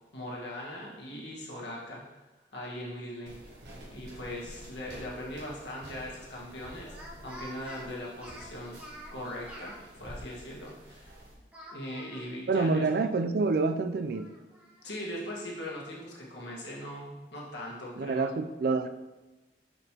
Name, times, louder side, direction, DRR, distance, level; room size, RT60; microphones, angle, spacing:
voice 1, 0.1-2.2 2.5-3.4 3.9-6.9 7.2-8.8 9.1-9.7 10.0-11.1 11.7-12.8 14.8-18.2, left 1 dB, 70° left, -4 dB, 1.5 m, -40 dB
sound 1, 3.3-11.3, equal, 70° right, 1.4 m, -49 dB
Speech, 5.1-5.7 6.8-9.8 11.5-13.2 13.6-13.7 14.1-15.5, right 1 dB, 10° right, 0.7 m, -49 dB
voice 2, 12.5-14.3 18.0-18.9, right 3 dB, 55° right, 9 dB, 0.3 m, -27 dB
6.3 x 5.2 x 2.9 m, 1.1 s
head